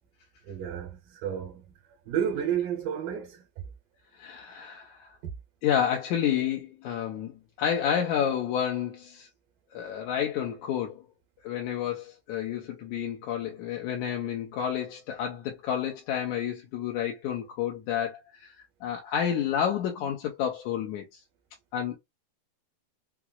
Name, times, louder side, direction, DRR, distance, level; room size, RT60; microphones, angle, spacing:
voice 1, 0.4-1.6 2.1-3.5 5.2-5.3, right 9 dB, 80° right, 2.6 m, -31 dB
voice 2, 4.2-5.1 5.6-9.3 9.7-11.0 11.4-18.6 18.8-21.2 21.7-22.0, left 9 dB, 75° left, 1.8 m, -30 dB
5.8 x 2.0 x 2.3 m
omnidirectional pair, 3.9 m